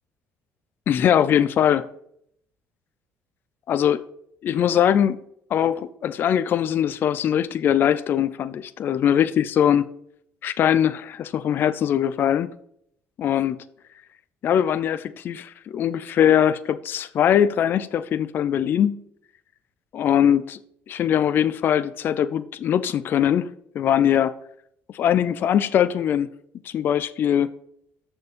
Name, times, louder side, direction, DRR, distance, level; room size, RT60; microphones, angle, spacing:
voice 1, 0.9-1.9 3.7-4.0 4.4-5.2 5.5-9.9 10.4-12.5 13.2-13.6 14.4-19.0 19.9-20.6 20.9-24.4 24.9-26.3 26.6-27.5, left 9 dB, 40° left, 0.4 m, -21 dB
13.0 x 4.4 x 5.1 m
cardioid pair, 175°, 5 cm